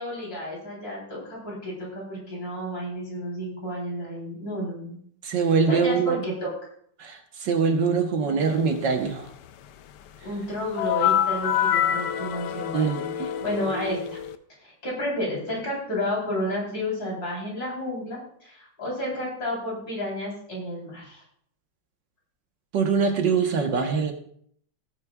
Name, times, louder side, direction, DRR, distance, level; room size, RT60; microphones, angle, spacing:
voice 1, 0.0-5.0 5.7-6.5 8.2-8.3 10.2-13.1 13.4-14.2 14.6-21.2, left 1 dB, 50° left, -3 dB, 4.3 m, -31 dB
voice 2, 5.2-6.2 7.0-9.3 12.7-13.3 22.7-24.1, right 5 dB, 70° right, 4 dB, 1.8 m, -23 dB
sound 1, 10.8-14.4, left 10 dB, 70° left, 1.1 m, -26 dB
18.0 x 8.9 x 2.4 m, 0.64 s
omnidirectional pair, 2.0 m